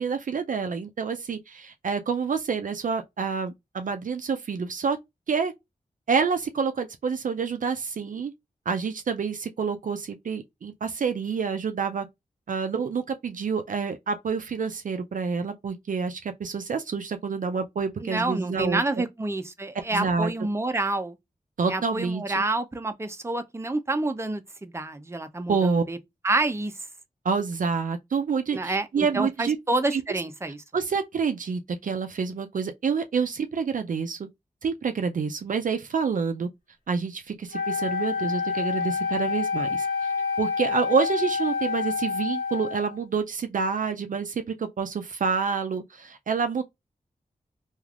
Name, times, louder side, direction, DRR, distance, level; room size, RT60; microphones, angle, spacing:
voice 1, 0.0-5.0 5.3-5.5 6.1-8.3 8.7-12.1 12.5-19.0 19.9-20.3 21.6-22.4 25.5-25.8 27.2-29.6 29.9-30.0 30.7-34.2 34.6-36.5 36.9-39.9 40.4-46.6, right 5 dB, 65° right, 0.4 m, -28 dB
voice 2, 18.0-21.1 21.7-26.0 26.2-26.7 28.5-30.6, right 2 dB, 20° right, 0.5 m, -28 dB
Wind instrument woodwind instrument, 37.5-43.0, left 5 dB, 70° left, 1.0 m, -28 dB
3.2 x 2.4 x 2.3 m
cardioid pair, 45°, 15 cm